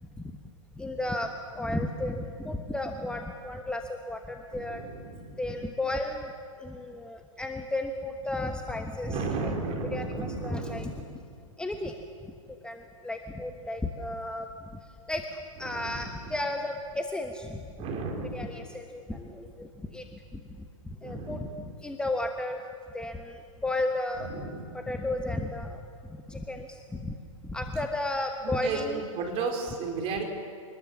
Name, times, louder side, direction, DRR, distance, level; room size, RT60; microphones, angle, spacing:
voice 1, 0.8-4.8 5.4-6.3 6.6-9.5 9.9-10.9 11.6-12.0 12.6-14.5 15.1-15.3 15.6-17.7 18.3-20.1 20.3-22.6 22.9-24.3 24.7-25.8 26.3-27.1 27.4-29.0, left 2 dB, 5° left, 4 dB, 1.2 m, -33 dB
voice 2, 4.5-5.3 9.1-11.0 15.6-15.9 16.2-16.4 17.8-18.5 21.0-21.6 24.3-24.8 28.4-30.2, right 4 dB, 35° right, 2 dB, 4.7 m, -34 dB
25.5 x 20.5 x 7.2 m, 2.4 s
hypercardioid pair, 115°, 18 cm